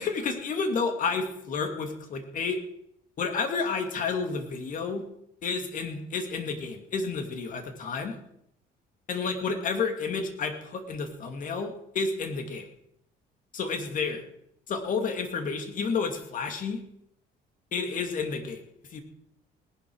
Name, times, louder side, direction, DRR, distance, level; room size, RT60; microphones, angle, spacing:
voice 1, 0.0-2.6 3.2-5.0 5.4-8.2 9.1-12.7 13.5-14.2 14.7-16.8 17.7-18.6 18.9-19.0, left 4 dB, 50° left, 6 dB, 2.5 m, -30 dB
18.5 x 11.0 x 4.9 m, 0.75 s
cardioid pair, 110°, 17 cm